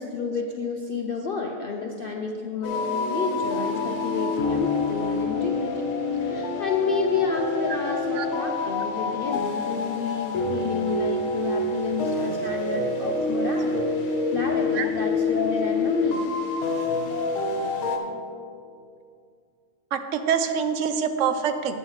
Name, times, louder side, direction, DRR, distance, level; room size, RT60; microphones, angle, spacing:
voice 1, 0.0-5.7 6.2-16.2, left 4 dB, 55° left, 1 dB, 0.6 m, -30 dB
sound 1, 2.6-18.0, left 3 dB, 80° left, 1.4 m, -27 dB
voice 2, 19.9-21.8, right 7 dB, 65° right, 8 dB, 0.9 m, -25 dB
11.0 x 9.0 x 3.2 m, 2.3 s
omnidirectional pair, 1.5 m